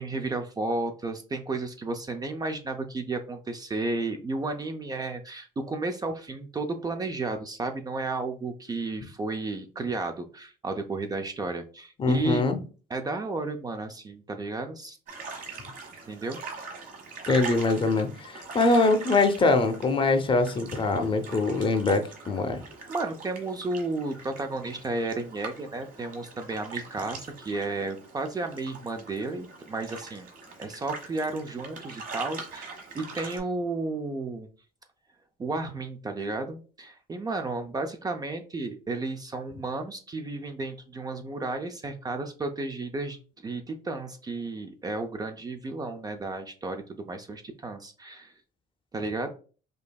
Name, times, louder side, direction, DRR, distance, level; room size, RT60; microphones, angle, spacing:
voice 1, 0.0-12.4 12.9-15.0 16.1-16.4 22.9-30.3 30.6-34.5 35.4-43.2 43.4-48.3 48.9-49.3, right 3 dB, 25° right, 6 dB, 0.4 m, -33 dB
voice 2, 12.0-12.6 17.3-22.6, left 3 dB, 30° left, 7 dB, 0.6 m, -23 dB
sound 1, 15.1-33.4, right 4 dB, 55° right, 1.3 m, -42 dB
5.1 x 2.6 x 2.3 m, 0.37 s
cardioid pair, 110°, 17 cm